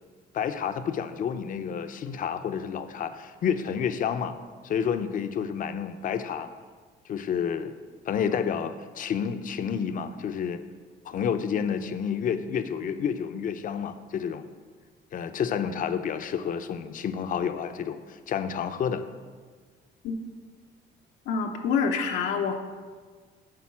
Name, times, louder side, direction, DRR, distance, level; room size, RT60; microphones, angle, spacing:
voice 1, 0.3-4.4 4.6-6.5 7.0-7.7 8.0-10.6 11.0-14.5 15.1-19.0, left 7 dB, 45° left, 9 dB, 0.6 m, -29 dB
voice 2, 21.3-22.5, left 6 dB, 85° left, 2 dB, 0.9 m, -26 dB
10.5 x 4.0 x 7.3 m, 1.5 s
cardioid pair, 140°, 19 cm